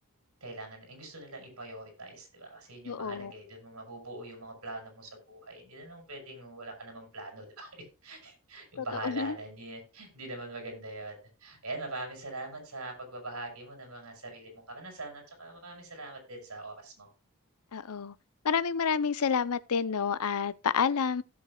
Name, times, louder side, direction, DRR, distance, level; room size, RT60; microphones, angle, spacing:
voice 1, 0.4-17.1, right 2 dB, 85° right, 5.4 m, -43 dB
voice 2, 2.8-3.3 8.8-9.3 17.7-18.1 18.4-21.2, left 6 dB, 85° left, 0.6 m, -29 dB
16.5 x 7.2 x 2.3 m
head